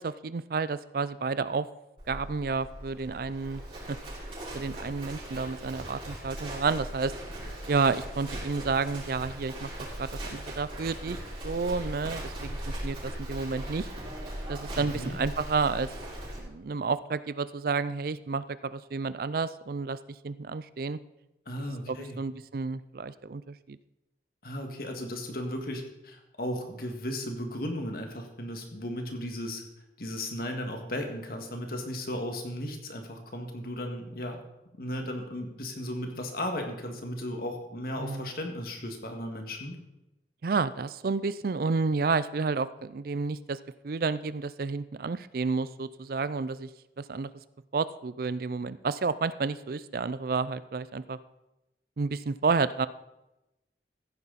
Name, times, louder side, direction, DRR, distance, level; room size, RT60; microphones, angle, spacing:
voice 1, 0.0-1.7 2.1-3.6 3.9-4.0 4.5-7.1 7.7-9.7 10.0-11.2 11.4-13.9 14.5-15.9 16.4-20.0 20.2-21.0 21.6-23.8 38.0-38.3 40.4-46.7 47.0-47.3 47.7-51.2 52.0-52.9, right 4 dB, 55° right, 16 dB, 0.4 m, -30 dB
Livestock farm animals working animals, 2.0-16.4, right 1 dB, 30° right, 4.7 m, -39 dB
voice 2, 14.7-15.2 21.5-22.2 24.4-29.6 30.0-34.4 34.8-39.8, left 1 dB, 55° left, 4 dB, 1.9 m, -35 dB
15.5 x 9.8 x 4.1 m, 0.94 s
head